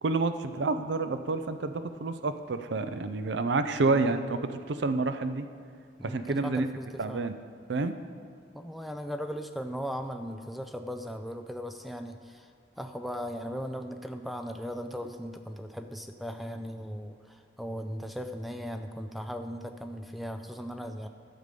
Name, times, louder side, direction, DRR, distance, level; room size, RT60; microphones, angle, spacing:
voice 1, 0.0-5.5 6.0-6.7 7.0-7.3 7.7-7.9, right 3 dB, 70° right, 10 dB, 0.5 m, -29 dB
voice 2, 6.0-7.3 8.5-12.5 12.8-21.1, equal, ahead, 6 dB, 0.3 m, -38 dB
11.5 x 6.8 x 5.2 m, 2.2 s
head